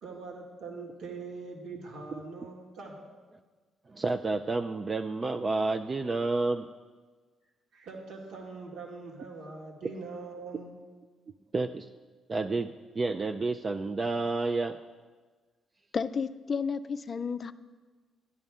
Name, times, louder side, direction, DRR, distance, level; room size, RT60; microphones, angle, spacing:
voice 1, 0.0-3.1 7.7-10.7, right 4 dB, 70° right, 0 dB, 1.9 m, -42 dB
voice 2, 3.9-6.7 11.5-11.9 12.3-14.8, right 3 dB, 35° right, 6 dB, 0.4 m, -30 dB
voice 3, 15.9-17.5, left 5 dB, 40° left, 11 dB, 0.4 m, -32 dB
12.0 x 10.5 x 3.6 m, 1.4 s
cardioid pair, 90°, 0 cm